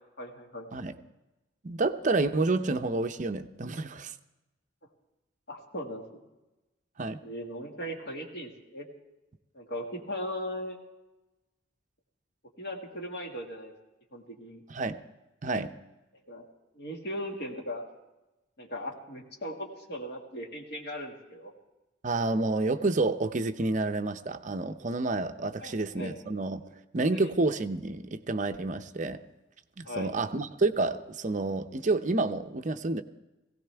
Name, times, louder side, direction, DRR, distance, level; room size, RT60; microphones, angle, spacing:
voice 1, 0.2-0.7 5.5-6.0 7.2-8.9 9.5-10.8 12.6-13.7 14.1-14.6 16.3-16.5 16.8-17.8 18.6-21.5 25.6-26.2 27.1-27.3 29.9-30.1, equal, 55° left, 1 dB, 2.0 m, -38 dB
voice 2, 1.6-4.1 7.0-7.2 14.7-15.0 15.4-15.7 22.0-26.6 26.9-29.2 29.8-33.0, right 3 dB, 40° right, 8 dB, 0.6 m, -29 dB
18.0 x 16.5 x 3.4 m, 1.0 s
head